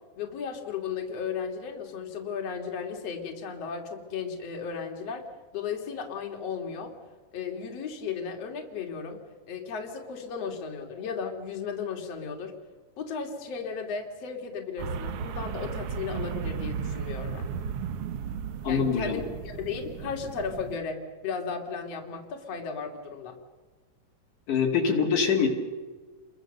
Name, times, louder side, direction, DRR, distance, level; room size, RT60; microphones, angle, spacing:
voice 1, 0.2-5.2 5.5-6.9 7.3-9.2 9.5-12.5 13.0-17.5 18.7-23.4, left 6 dB, 50° left, 2 dB, 3.6 m, -35 dB
sound 1, 14.8-20.8, right 7 dB, 65° right, 1.6 m, -35 dB
voice 2, 18.6-19.2 24.5-25.5, left 6 dB, 70° left, 2 dB, 3.8 m, -24 dB
30.0 x 23.0 x 6.8 m, 1.4 s
omnidirectional pair, 3.8 m